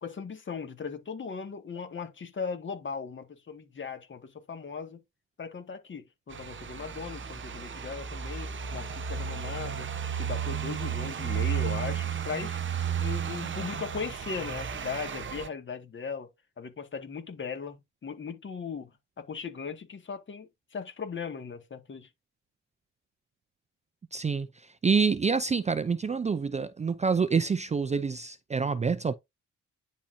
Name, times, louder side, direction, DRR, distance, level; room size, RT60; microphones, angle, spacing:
voice 1, 0.0-5.0 5.4-12.6 13.0-16.3 16.6-18.9 19.2-22.1, left 5 dB, 40° left, 2.0 m, -38 dB
sound 1, 6.3-15.5, right 8 dB, 40° right, 1.1 m, -33 dB
voice 2, 24.1-24.5 24.8-29.1, right 5 dB, 25° right, 0.5 m, -27 dB
10.0 x 4.2 x 2.7 m
cardioid pair, 90°, 30 cm